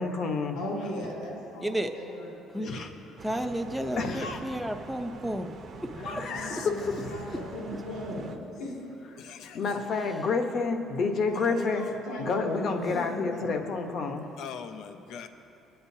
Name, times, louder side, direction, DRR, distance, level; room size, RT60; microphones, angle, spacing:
voice 1, 0.0-0.6 2.6-2.9 4.0-4.4 6.0-7.3 9.5-11.9 12.2-14.3, left 4 dB, 50° left, 5 dB, 1.0 m, -29 dB
voice 2, 0.5-2.8 4.1-4.2 5.9-8.7 11.2-13.7, left 1 dB, 85° left, -4 dB, 2.7 m, -38 dB
voice 3, 3.2-5.5 12.7-12.9, right 1 dB, ahead, 4 dB, 0.6 m, -32 dB
sound 1, 3.2-8.4, right 4 dB, 45° right, 0.8 m, -45 dB
voice 4, 6.3-6.7 6.9-7.4 9.2-9.8 14.4-15.3, left 7 dB, 70° left, 8 dB, 0.6 m, -43 dB
20.0 x 8.9 x 2.7 m, 2.8 s
cardioid pair, 130°, 0 cm